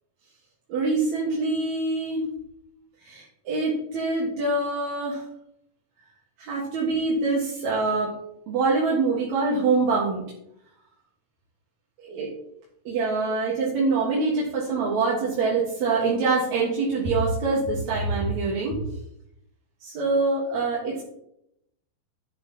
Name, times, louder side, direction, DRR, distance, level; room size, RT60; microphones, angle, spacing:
voice 1, 0.7-2.3 3.0-5.2 6.4-8.1 8.5-10.2 12.0-12.3 12.9-18.8 19.8-21.0, right 3 dB, 60° right, -4 dB, 2.6 m, -25 dB
11.5 x 9.4 x 3.0 m, 0.78 s
omnidirectional pair, 4.3 m